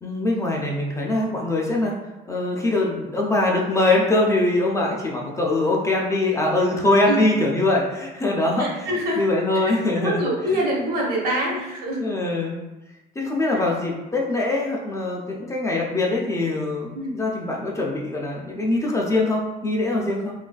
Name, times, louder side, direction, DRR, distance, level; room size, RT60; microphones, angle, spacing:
voice 1, 0.0-1.9 2.3-8.9 9.2-10.2 11.5-11.6 12.0-12.6 13.2-20.3, left 2 dB, 20° left, -2 dB, 0.4 m, -23 dB
voice 2, 8.6-9.2 9.9-12.1 13.5-13.6 16.9-17.1, right 1 dB, 60° right, -3 dB, 0.9 m, -25 dB
3.0 x 2.4 x 2.2 m, 1.0 s
cardioid pair, 110°, 17 cm